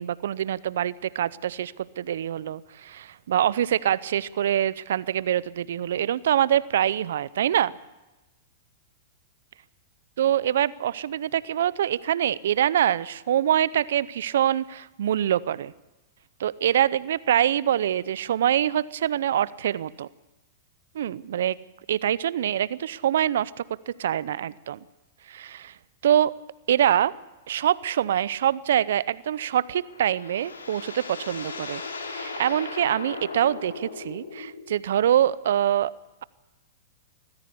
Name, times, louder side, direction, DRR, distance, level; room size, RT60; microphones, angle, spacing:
voice 1, 0.0-7.7 10.2-15.7 16.4-20.1 20.9-21.6 21.9-23.5 23.9-24.8 25.3-25.7 26.0-26.3 26.7-27.1 27.5-31.8 32.1-35.9, right 10 dB, 70° right, 20 dB, 0.6 m, -24 dB
sound 1, 29.6-34.8, left 4 dB, 90° left, 3.2 m, -37 dB
22.0 x 15.0 x 8.4 m, 1.0 s
hypercardioid pair, 110°, 0 cm